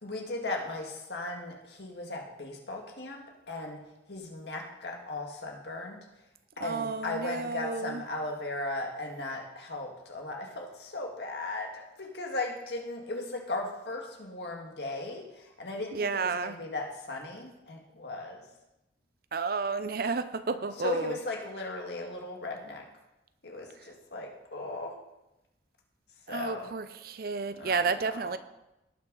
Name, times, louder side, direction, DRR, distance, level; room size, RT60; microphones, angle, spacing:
voice 1, 0.0-3.2 3.5-3.8 4.1-6.0 6.6-18.4 20.8-22.8 23.4-24.9 26.3-26.7 27.6-27.8, left 2 dB, 70° left, 1 dB, 1.9 m, -37 dB
voice 2, 6.6-8.0 15.9-16.6 19.3-21.2 23.8-23.9 26.3-28.4, right 4 dB, 55° right, 12 dB, 0.6 m, -31 dB
18.0 x 6.2 x 4.0 m, 0.94 s
head